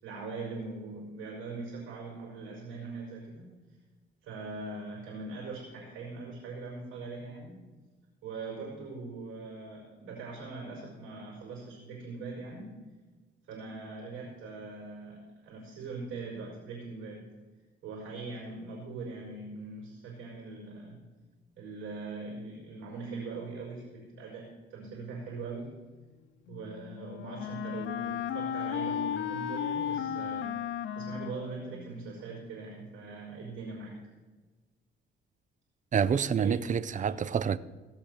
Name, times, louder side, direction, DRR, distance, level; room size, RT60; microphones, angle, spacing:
voice 1, 0.0-3.5 4.2-7.6 8.2-12.7 13.5-17.3 17.8-21.0 21.6-25.7 26.5-30.6 31.0-34.0 36.4-37.2, right 3 dB, 90° right, 5.3 m, -41 dB
Wind instrument woodwind instrument, 26.5-32.3, left 8 dB, 70° left, 0.9 m, -35 dB
voice 2, 35.9-37.6, right 7 dB, 40° right, 0.6 m, -27 dB
17.5 x 6.0 x 6.8 m
cardioid pair, 90°, 20 cm